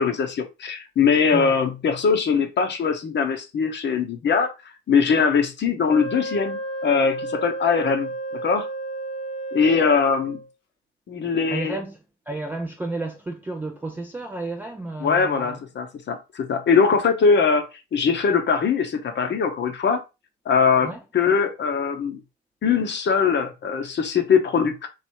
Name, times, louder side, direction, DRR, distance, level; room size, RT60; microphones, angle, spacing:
voice 1, 0.0-4.5 4.9-8.7 9.5-10.4 11.1-11.8 15.0-20.0 20.5-22.2 22.6-24.9, left 5 dB, 30° left, 0.8 m, -21 dB
Wind instrument woodwind instrument, 5.9-10.5, right 2 dB, 85° left, 0.7 m, -32 dB
voice 2, 11.5-12.0 12.3-15.6 20.8-21.0, right 2 dB, 5° right, 0.4 m, -32 dB
3.2 x 3.0 x 4.2 m
figure-of-eight pair, 55°, 36 cm